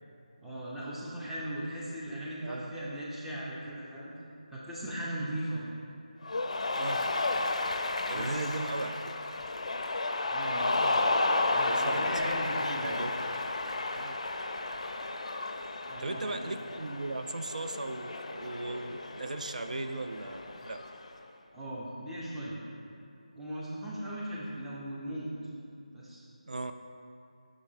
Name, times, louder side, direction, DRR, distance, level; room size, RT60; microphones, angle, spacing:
voice 1, 0.4-4.1 4.5-5.6 8.1-8.5 10.3-10.7 11.5-13.0 15.8-16.5 21.5-22.6 23.3-25.3 25.9-26.2, right 1 dB, ahead, -9 dB, 0.4 m, -38 dB
voice 2, 2.4-2.7 6.7-7.0 8.1-9.2 11.6-12.4 12.8-13.2 13.9-14.1 15.8-20.8 26.5-26.7, right 2 dB, 70° right, 7 dB, 0.4 m, -37 dB
Cheering, 6.2-21.1, left 2 dB, 60° left, 0.4 m, -32 dB
6.1 x 3.7 x 5.5 m, 2.6 s
figure-of-eight pair, 165°, 4 cm